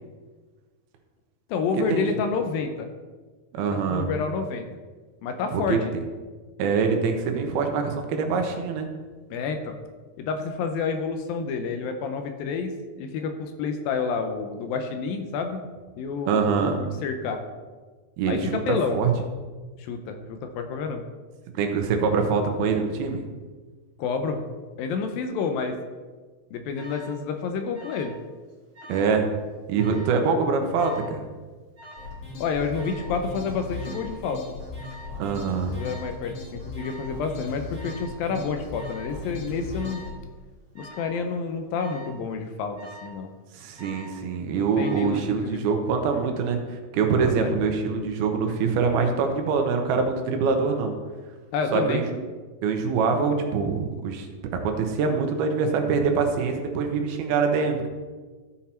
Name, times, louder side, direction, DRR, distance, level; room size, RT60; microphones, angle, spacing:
voice 1, 1.5-2.9 3.7-4.7 5.2-5.8 9.3-9.8 10.2-15.6 16.0-17.4 18.3-19.0 19.8-21.0 24.0-24.4 24.8-25.8 26.5-28.2 32.4-34.4 35.7-40.0 40.8-43.3 44.5-45.6 47.2-47.5 51.5-52.0, left 5 dB, 80° left, 6 dB, 2.4 m, -29 dB
voice 2, 3.5-4.1 5.5-5.8 6.6-8.9 16.3-16.8 18.2-19.1 21.5-23.3 28.9-29.3 29.7-31.2 35.2-35.7 43.5-51.0 51.7-52.0 52.6-54.3 54.6-57.9, right 5 dB, 80° right, 4 dB, 2.9 m, -24 dB
Alarm, 26.7-27.2 27.7-28.2 28.5-29.2 29.7-30.2 30.7-31.2 31.8-32.2 32.8-33.2 33.8-34.2 34.8-35.2 35.8-36.2 36.8-37.2 37.7-38.2 38.7-39.2 39.7-40.2 40.7-41.2 41.7-42.2 42.8-43.2 43.8-44.2 44.8-45.2, right 1 dB, 40° right, 2.5 m, -45 dB
sound 1, 32.0-40.1, left 3 dB, 30° left, 2.2 m, -37 dB
14.0 x 5.8 x 4.4 m, 1.4 s
omnidirectional pair, 4.4 m